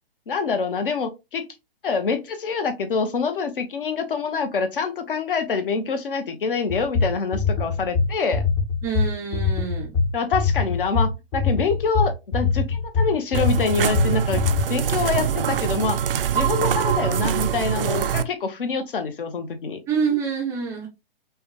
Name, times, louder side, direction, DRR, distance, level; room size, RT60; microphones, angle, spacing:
voice 1, 0.3-1.4 1.8-8.4 10.1-14.4 14.7-16.0 16.3-19.8, left 5 dB, 60° left, 1.1 m, -26 dB
sound 1, 6.7-14.6, left 4 dB, 30° left, 0.8 m, -23 dB
voice 2, 8.8-9.9 19.9-20.9, right 6 dB, 10° right, 0.4 m, -26 dB
sound 2, 13.3-18.2, right 8 dB, 65° right, 0.5 m, -23 dB
5.4 x 2.3 x 2.9 m
figure-of-eight pair, 125°, 31 cm